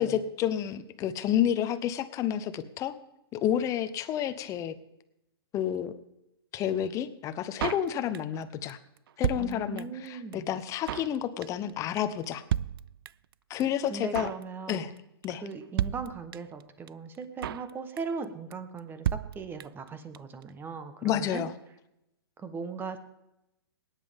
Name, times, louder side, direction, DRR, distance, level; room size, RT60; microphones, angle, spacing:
voice 1, 0.0-3.0 3.3-4.7 5.5-5.9 6.5-8.8 9.2-12.4 13.5-14.3 14.7-14.9 15.2-15.4 21.0-21.5, left 10 dB, 25° left, 11 dB, 0.9 m, -30 dB
Drum kit, 7.6-8.4 8.7-8.8 9.0-10.1 10.3-10.4 10.6-11.2 11.4-11.7 12.0-12.1 12.2-12.3 12.5-13.3 13.6-13.7 13.9-14.4 14.7-15.0 15.2-15.3 15.5-15.6 15.8-16.6 16.9-17.0 17.1-17.7 18.0-18.2 18.5-18.6 18.8-18.9 19.0-19.9 20.1-20.2 20.4-20.5, right 11 dB, 60° right, 0.4 m, -32 dB
voice 2, 9.4-10.5 13.9-14.8 15.3-21.4 22.4-23.0, right 4 dB, 15° right, 10 dB, 1.2 m, -39 dB
19.5 x 10.0 x 3.6 m, 0.87 s
hypercardioid pair, 135°, 13 cm